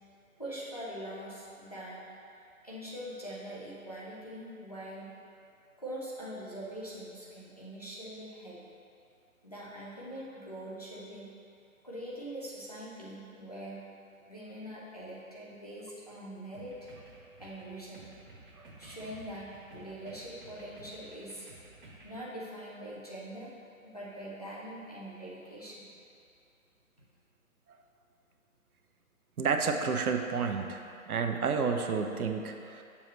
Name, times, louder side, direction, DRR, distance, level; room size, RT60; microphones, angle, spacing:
voice 1, 0.4-2.0 2.6-5.1 5.8-8.6 9.4-11.3 11.8-13.8 14.3-16.7 17.4-18.2 18.8-21.5 22.0-23.5 23.8-25.9, right 1 dB, 25° left, -8 dB, 0.7 m, -43 dB
sound 1, 16.5-22.2, right 2 dB, 35° right, 1.1 m, -53 dB
voice 2, 29.4-32.8, right 5 dB, 80° right, 5 dB, 0.7 m, -30 dB
7.0 x 6.1 x 3.1 m, 2.5 s
hypercardioid pair, 180°, 43 cm